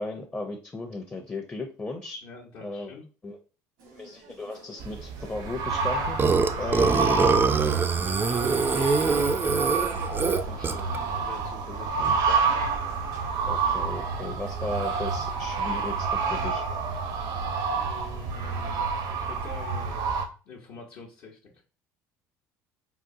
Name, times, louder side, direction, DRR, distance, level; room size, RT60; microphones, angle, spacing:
voice 1, 0.0-2.2 2.6-2.9 3.2-3.4 3.9-7.0 13.5-16.6, left 2 dB, 20° left, 2 dB, 0.6 m, -36 dB
voice 2, 2.2-3.0 6.5-12.2 17.7-20.0 20.4-21.5, left 3 dB, 65° left, -3 dB, 0.8 m, -45 dB
sound 1, 3.8-16.4, right 2 dB, 80° right, 1.0 m, -49 dB
sound 2, 4.8-20.3, right 5 dB, 65° right, 0.6 m, -29 dB
Burping eructation, 6.2-11.0, right 4 dB, 25° right, 0.3 m, -23 dB
3.7 x 2.3 x 2.6 m, 0.34 s
hypercardioid pair, 70°, 8 cm